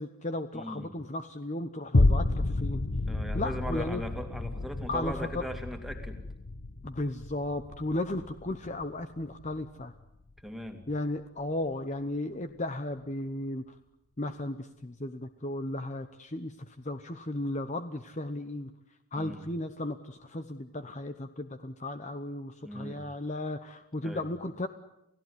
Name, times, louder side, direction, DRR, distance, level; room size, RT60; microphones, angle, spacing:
voice 1, 0.0-2.8 3.3-4.0 4.9-5.5 6.8-9.9 10.9-13.7 14.2-18.7 19.1-24.7, left 1 dB, 30° left, 9 dB, 0.9 m, -35 dB
voice 2, 0.5-0.9 2.5-2.6 3.1-6.2 10.4-10.8 19.2-19.4 22.6-23.0 24.0-24.2, equal, ahead, 5 dB, 2.5 m, -39 dB
sound 1, 1.9-10.5 11.0-11.1, left 2 dB, 55° left, 1.1 m, -30 dB
29.5 x 17.0 x 9.4 m, 0.89 s
head